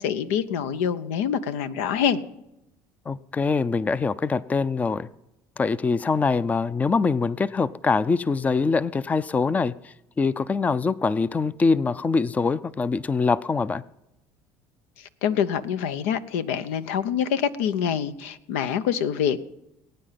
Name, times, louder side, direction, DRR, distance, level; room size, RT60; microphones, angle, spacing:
voice 1, 0.0-2.2 15.0-19.5, left 8 dB, 90° left, 0.8 m, -26 dB
voice 2, 3.1-5.1 5.6-13.8, left 4 dB, 20° left, 0.5 m, -24 dB
20.5 x 9.2 x 5.8 m
supercardioid pair, 100°, 7 cm